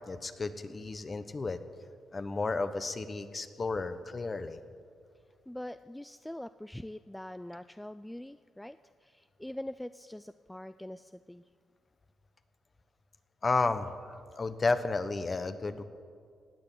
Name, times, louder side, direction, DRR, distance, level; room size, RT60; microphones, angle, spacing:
voice 1, 0.1-1.6 2.1-4.6 13.4-15.8, left 3 dB, 35° left, 11 dB, 1.0 m, -32 dB
voice 2, 5.5-11.4, left 1 dB, 5° left, 12 dB, 0.4 m, -43 dB
18.5 x 6.8 x 9.2 m, 2.2 s
cardioid pair, 70°, 0 cm